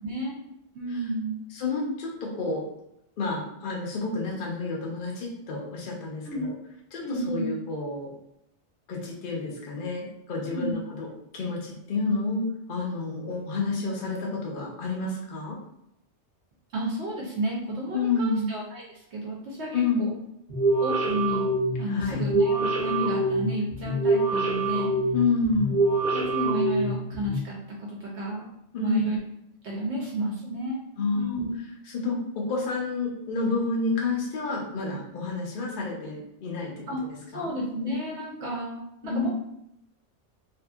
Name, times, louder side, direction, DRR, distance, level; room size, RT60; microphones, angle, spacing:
voice 1, 0.0-0.4 0.7-1.4 6.3-6.5 7.0-7.5 10.5-10.8 16.7-20.1 20.8-21.5 21.8-24.9 26.1-28.5 28.8-29.2 29.6-30.8 31.1-31.5 36.9-37.0 37.3-39.3, right 1 dB, 70° right, -3 dB, 0.9 m, -31 dB
voice 2, 1.5-2.6 3.2-6.5 6.9-8.1 8.9-11.1 11.3-15.6 17.9-18.5 19.7-20.0 21.9-22.2 25.1-25.8 28.7-29.0 31.0-31.4 31.9-36.7 37.0-37.5 39.0-39.3, left 3 dB, 55° left, -2 dB, 0.7 m, -29 dB
sound 1, 20.5-27.4, right 2 dB, 45° right, 0.8 m, -26 dB
2.7 x 2.5 x 2.3 m, 0.79 s
omnidirectional pair, 1.2 m